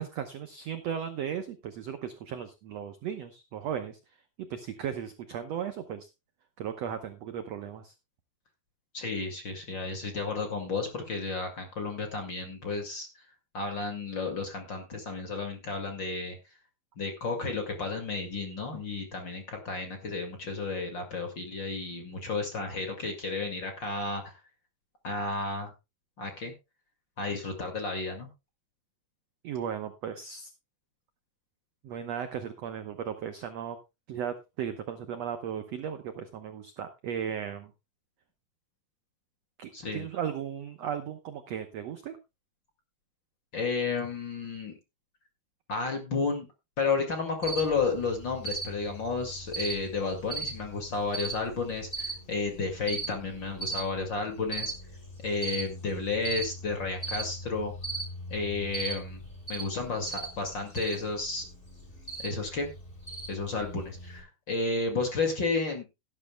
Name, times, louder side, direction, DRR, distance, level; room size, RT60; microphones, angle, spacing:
voice 1, 0.0-4.0 4.5-6.1 6.6-7.9 29.4-30.5 31.8-33.8 34.1-37.7 39.6-42.2, right 8 dB, 75° right, 8 dB, 1.5 m, -36 dB
voice 2, 8.9-13.1 13.5-16.4 17.0-24.4 25.0-25.7 26.2-26.5 27.2-28.3 39.7-40.1 43.5-44.7 45.7-46.5 46.8-54.7 55.2-57.7 58.3-59.2 59.5-61.5 62.2-62.7 63.3-65.8, left 4 dB, 35° left, 4 dB, 2.2 m, -32 dB
Cricket, 47.4-64.2, right 3 dB, 15° left, 4.1 m, -39 dB
17.5 x 11.0 x 2.2 m, 0.25 s
omnidirectional pair, 4.3 m